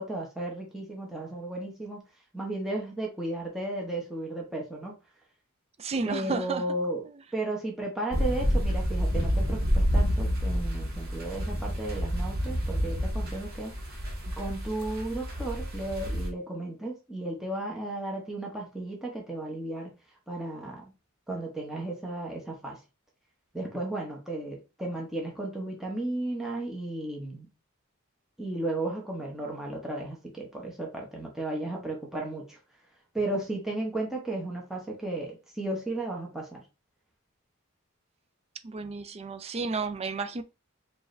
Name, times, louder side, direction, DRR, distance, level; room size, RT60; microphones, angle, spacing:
voice 1, 0.0-2.0 2.3-4.9 6.1-7.0 7.3-13.7 14.3-19.9 20.3-20.8 21.3-22.8 23.5-27.5 28.4-32.6 33.1-36.6, right 2 dB, ahead, 0.9 m, -34 dB
voice 2, 5.8-6.6 7.0-7.2 38.6-40.4, right 4 dB, 30° right, 0.3 m, -32 dB
sound 1, 8.1-16.3, equal, 45° right, 1.3 m, -29 dB
4.6 x 2.6 x 3.1 m
head